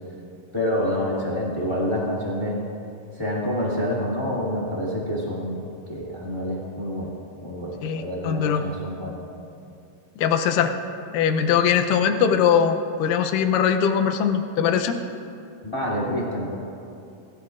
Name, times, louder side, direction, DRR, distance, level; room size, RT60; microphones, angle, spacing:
voice 1, 0.5-2.6 3.1-5.6 5.9-7.1 7.4-9.2 15.6-16.5, equal, 10° left, -6 dB, 2.2 m, -27 dB
voice 2, 7.8-8.6 10.2-10.7 11.1-15.0, left 7 dB, 80° left, 7 dB, 2.3 m, -21 dB
20.0 x 14.0 x 2.5 m, 2.6 s
omnidirectional pair, 4.0 m